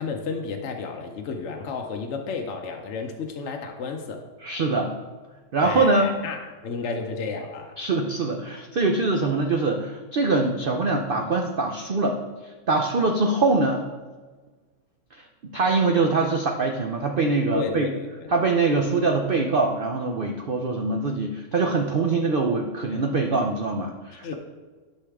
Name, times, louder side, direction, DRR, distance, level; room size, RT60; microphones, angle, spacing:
voice 1, 0.0-4.2 5.6-7.7 17.5-18.3 24.1-24.3, left 5 dB, 60° left, 3 dB, 0.8 m, -32 dB
voice 2, 4.4-4.9 5.5-6.1 7.8-12.2 12.7-13.8 15.1-17.9 18.3-24.3, right 3 dB, 85° right, 3 dB, 0.4 m, -23 dB
11.5 x 5.5 x 3.5 m, 1.4 s
omnidirectional pair, 1.7 m